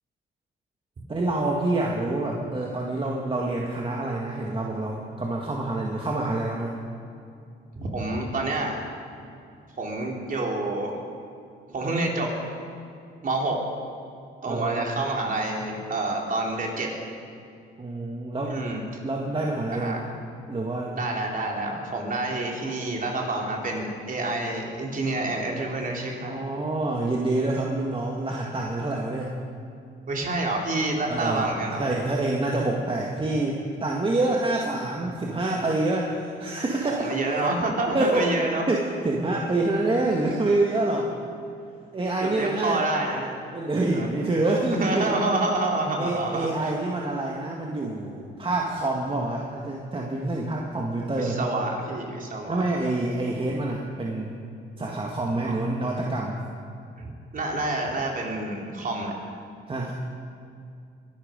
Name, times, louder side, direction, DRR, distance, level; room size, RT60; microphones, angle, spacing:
voice 1, 1.1-6.8 14.5-14.9 17.8-18.6 19.0-20.0 20.5-21.0 26.2-29.3 31.1-37.4 37.9-38.3 38.7-41.1 41.9-42.8 43.5-45.1 46.0-51.5 52.5-54.4 54.8-56.4 59.7-59.9, right 2 dB, 25° right, -1 dB, 1.8 m, -27 dB
voice 2, 7.7-8.8 9.8-11.0 11.7-12.3 13.2-13.6 14.4-16.9 18.5-18.8 19.7-20.1 20.9-26.4 30.1-31.8 36.8-38.6 42.2-43.3 43.9-44.1 44.8-46.7 51.2-52.6 55.4-55.6 57.0-59.1, right 2 dB, 45° right, 0 dB, 3.6 m, -28 dB
22.5 x 12.0 x 5.3 m, 2.5 s
cardioid pair, 90°, 20 cm